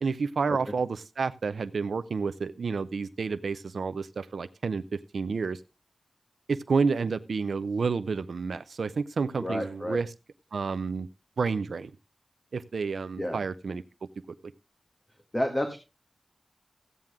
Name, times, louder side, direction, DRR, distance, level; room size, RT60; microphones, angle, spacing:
voice 1, 0.0-5.6 6.5-10.1 10.5-11.1 11.4-11.9 12.5-13.8, right 4 dB, 85° right, 13 dB, 0.6 m, -30 dB
voice 2, 9.4-10.0 13.2-13.4 15.3-15.8, equal, 15° left, 4 dB, 1.9 m, -30 dB
15.0 x 9.0 x 3.6 m, 0.28 s
wide cardioid pair, 90°, 0 cm